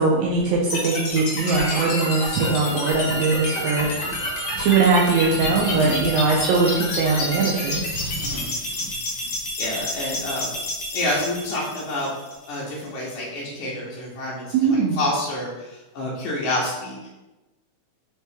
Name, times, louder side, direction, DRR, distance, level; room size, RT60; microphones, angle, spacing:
voice 1, 0.0-3.9 4.6-7.8 14.5-15.0, right 4 dB, 80° right, -2 dB, 1.8 m, -21 dB
sound 1, 0.7-12.7, left 2 dB, 60° left, 1.6 m, -29 dB
Bowed string instrument, 1.4-7.7, right 1 dB, 40° right, 1.0 m, -34 dB
sound 2, 3.7-11.2, right 3 dB, 60° right, 2.2 m, -38 dB
voice 2, 5.7-6.1 8.2-8.6 9.6-10.6 10.9-12.1 12.5-17.0, left 1 dB, 75° left, -5 dB, 2.2 m, -28 dB
5.3 x 2.9 x 3.4 m, 1.0 s
omnidirectional pair, 3.6 m